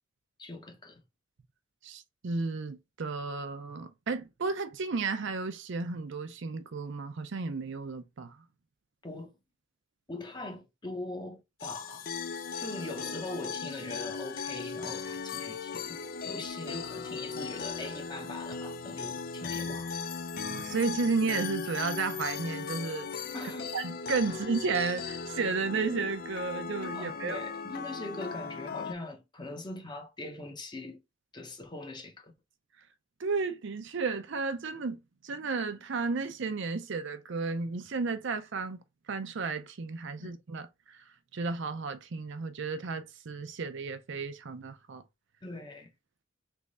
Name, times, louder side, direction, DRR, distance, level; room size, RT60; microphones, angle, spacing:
voice 1, 0.4-1.0 9.0-9.3 10.1-12.1 12.6-16.0 16.2-19.9 23.3-23.7 24.3-24.4 26.9-31.0 31.3-32.3 40.2-40.3 45.4-45.9, left 2 dB, 20° left, 0.8 m, -41 dB
voice 2, 1.8-8.4 20.5-23.1 23.7-27.4 33.2-38.8 39.1-41.0 41.3-45.0, right 4 dB, 60° right, 0.5 m, -33 dB
sound 1, 11.6-28.9, left 5 dB, 45° left, 0.4 m, -37 dB
3.5 x 3.1 x 3.8 m
head